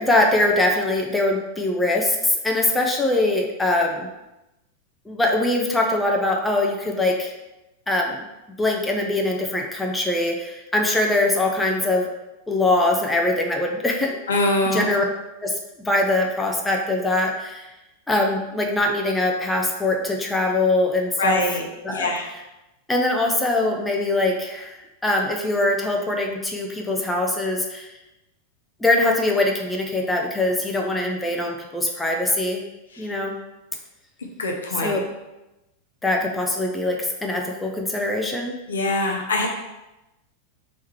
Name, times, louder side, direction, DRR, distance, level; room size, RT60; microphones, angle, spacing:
voice 1, 0.0-4.1 5.1-7.3 7.9-8.2 8.6-12.1 12.5-14.2 14.6-15.0 15.4-17.7 18.1-21.4 21.8-22.1 22.9-24.8 25.0-27.9 28.8-32.6 33.0-33.4 34.8-35.0 36.0-38.5, left 2 dB, 10° left, 1 dB, 0.5 m, -22 dB
voice 2, 14.3-14.9 21.2-21.6 21.9-22.3 34.4-35.0 38.7-39.5, left 2 dB, 65° left, 1 dB, 0.7 m, -23 dB
3.5 x 3.1 x 4.4 m, 0.99 s
figure-of-eight pair, 90°, 0 cm